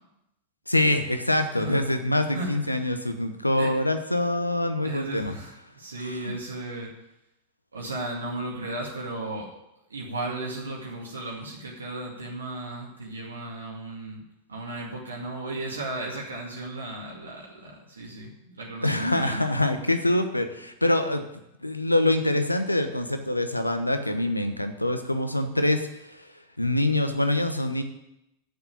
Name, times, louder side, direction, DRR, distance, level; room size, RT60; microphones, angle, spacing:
voice 1, 0.7-5.3 6.0-6.3 18.8-21.2 21.6-26.3 26.6-27.8, left 1 dB, 85° left, 8 dB, 1.0 m, -25 dB
voice 2, 2.3-3.0 3.5-3.7 4.8-6.9 7.7-9.5 9.9-14.2 14.5-19.4, right 2 dB, 75° right, -2 dB, 2.1 m, -35 dB
8.2 x 7.7 x 8.8 m, 0.86 s
figure-of-eight pair, 90°, 0 cm